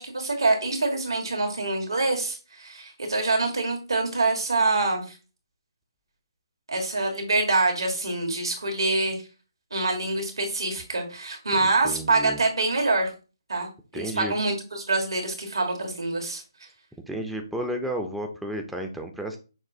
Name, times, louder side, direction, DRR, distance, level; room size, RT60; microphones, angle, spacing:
voice 1, 0.0-5.2 6.7-9.2 9.7-13.1 13.5-13.7 13.9-16.4, right 3 dB, 85° right, 2 dB, 1.4 m, -25 dB
voice 2, 11.6-12.4 13.9-14.3 17.1-19.4, right 1 dB, ahead, 3 dB, 0.4 m, -32 dB
5.9 x 2.4 x 2.6 m, 0.33 s
hypercardioid pair, 155°, 2 cm